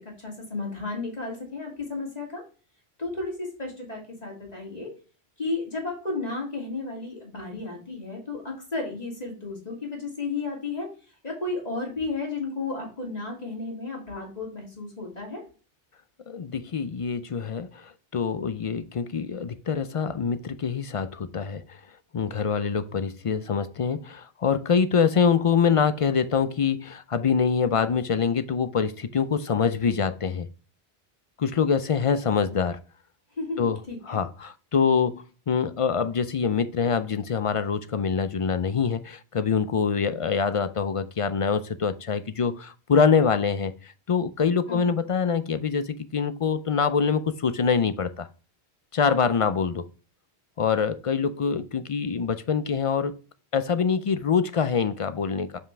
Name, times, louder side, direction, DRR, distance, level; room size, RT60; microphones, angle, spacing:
voice 1, 0.0-2.4 3.0-4.9 5.4-10.9 11.2-15.4 33.4-34.2 44.7-44.9, left 3 dB, 40° left, 2.7 m, -33 dB
voice 2, 16.3-21.8 22.1-30.5 31.4-32.8 33.6-33.8 34.1-48.3 48.9-49.9 50.6-53.2 53.5-55.6, left 6 dB, 55° left, 0.3 m, -25 dB
7.2 x 5.5 x 3.3 m
omnidirectional pair, 1.1 m